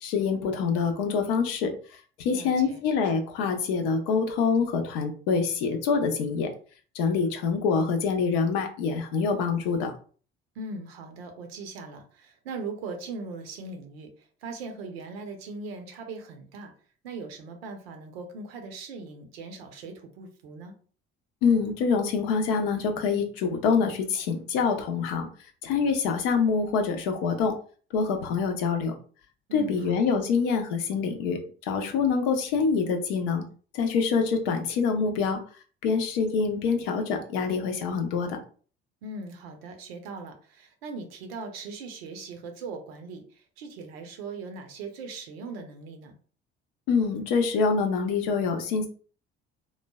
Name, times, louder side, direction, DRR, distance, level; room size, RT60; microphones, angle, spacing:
voice 1, 0.0-1.7 2.2-6.5 6.9-9.9 21.4-25.3 25.6-27.5 27.9-28.9 29.5-33.4 33.7-35.4 35.8-38.4 46.9-48.9, left 5 dB, 75° left, 6 dB, 0.6 m, -25 dB
voice 2, 2.3-2.8 10.6-16.7 17.0-20.8 29.5-30.0 39.0-46.1, right 3 dB, 80° right, 5 dB, 0.6 m, -40 dB
3.1 x 2.1 x 2.2 m, 0.42 s
hypercardioid pair, 55°, 30 cm